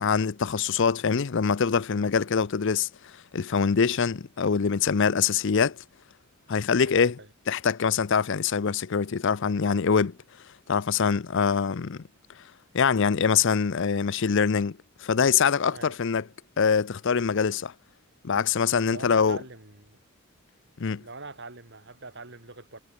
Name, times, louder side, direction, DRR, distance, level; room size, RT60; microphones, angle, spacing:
voice 1, 0.0-2.9 3.3-5.8 6.5-7.2 7.5-10.1 10.7-12.0 12.7-16.2 16.6-17.7 18.2-19.4 20.8-21.0, left 6 dB, 55° left, 0.5 m, -24 dB
voice 2, 6.8-7.3 15.7-16.0 18.7-20.0 20.9-22.8, right 3 dB, 55° right, 4.8 m, -43 dB
head